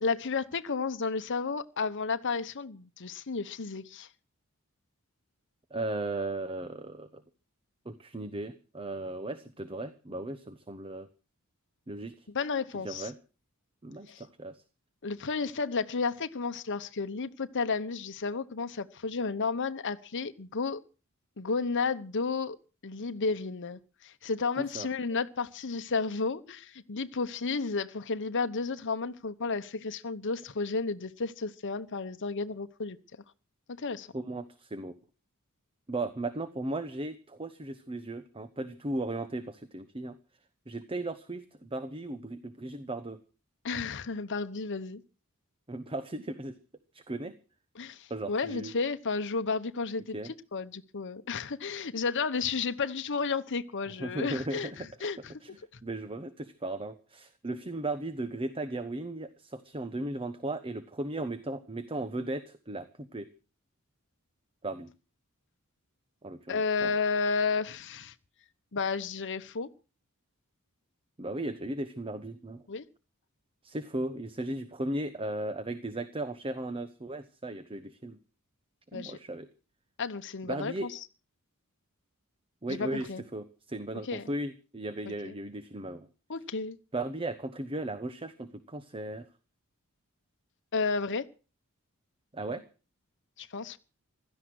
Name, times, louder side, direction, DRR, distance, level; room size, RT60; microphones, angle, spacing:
voice 1, 0.0-4.1 12.3-13.1 14.1-14.2 15.0-20.8 21.4-22.6 22.8-33.0 33.8-34.1 43.6-45.0 47.8-55.3 55.7-55.8 66.5-68.1 68.7-69.7 72.7-72.8 78.9-79.2 80.0-81.0 82.7-83.2 84.0-84.3 85.1-85.3 86.3-86.8 90.7-91.3 93.4-93.8, left 4 dB, 55° left, 1.0 m, -32 dB
voice 2, 5.7-7.2 7.8-11.1 11.9-12.3 12.7-13.2 13.8-14.6 24.6-24.9 34.1-35.0 35.9-40.1 40.7-43.2 45.7-46.5 46.9-47.3 48.1-48.7 50.1-50.3 54.0-54.8 55.4-63.3 64.6-64.9 66.2-66.9 71.2-72.6 73.6-78.2 78.9-79.5 80.4-80.9 82.6-86.1 86.9-89.2 92.3-92.6, right 2 dB, 25° right, 1.0 m, -36 dB
16.5 x 13.0 x 6.3 m
head